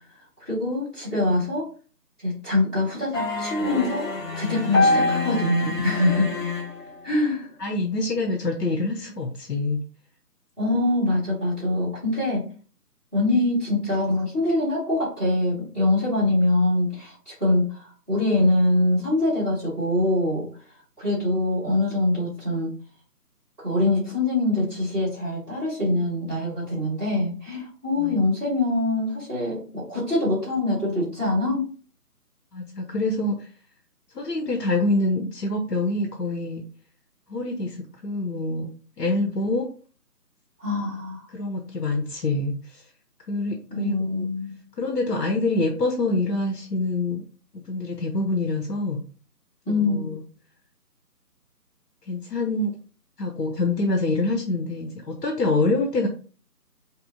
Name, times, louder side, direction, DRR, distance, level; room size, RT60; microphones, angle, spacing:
voice 1, 0.4-1.6 2.2-4.1 4.3-6.4 7.0-7.5 10.6-12.4 13.1-20.5 21.0-22.7 23.6-31.7 40.6-41.3 43.7-44.6 49.7-50.1, left 2 dB, 5° right, -11 dB, 1.0 m, -24 dB
sound 1, 3.1-7.1, left 2 dB, 55° left, 1.5 m, -25 dB
voice 2, 7.6-9.8 28.0-28.2 32.5-33.5 34.1-36.6 37.3-38.7 39.0-39.7 41.3-42.8 43.3-44.3 44.8-47.2 47.5-49.0 49.7-50.2 52.1-52.7 53.2-56.1, left 2 dB, 85° left, 4 dB, 0.8 m, -26 dB
5.4 x 2.1 x 2.5 m, 0.40 s
figure-of-eight pair, 150°, 47 cm